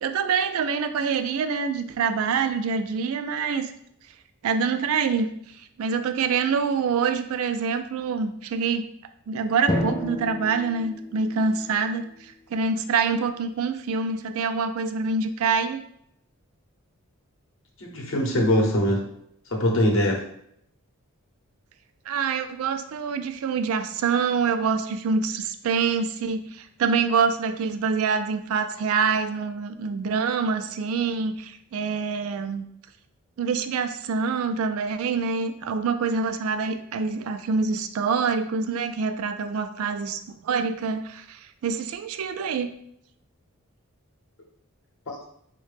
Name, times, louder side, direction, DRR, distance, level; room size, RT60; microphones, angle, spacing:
voice 1, 0.0-3.7 4.4-5.3 5.8-8.8 9.3-15.8 22.1-32.6 33.4-42.7, right 5 dB, 75° right, 9 dB, 0.3 m, -26 dB
Drum, 9.7-12.2, left 1 dB, 15° left, 0.3 m, -31 dB
voice 2, 17.8-19.0 19.5-20.2 45.1-45.2, equal, 60° left, 1 dB, 0.8 m, -22 dB
3.8 x 2.1 x 3.2 m, 0.71 s
head